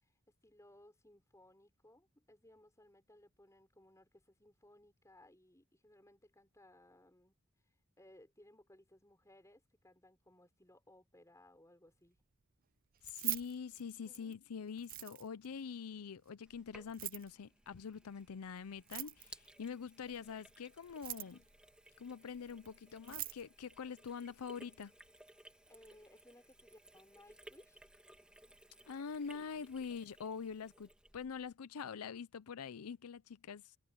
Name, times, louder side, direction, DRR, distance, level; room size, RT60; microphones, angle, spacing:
voice 1, 0.0-7.4 8.0-12.2 14.0-14.4 25.7-27.8, left 1 dB, 15° left, 6.0 m, -63 dB
Keys jangling, 12.9-14.3 14.8-15.5 16.8-17.3 18.8-19.5 20.8-21.5 22.6-22.7 23.0-23.4, right 17 dB, 40° right, 0.5 m, -42 dB
voice 2, 13.0-21.4 22.0-24.9 28.9-33.8, left 6 dB, 85° left, 0.5 m, -45 dB
Sink (filling or washing), 16.5-31.5, right 1 dB, 5° right, 2.1 m, -61 dB
head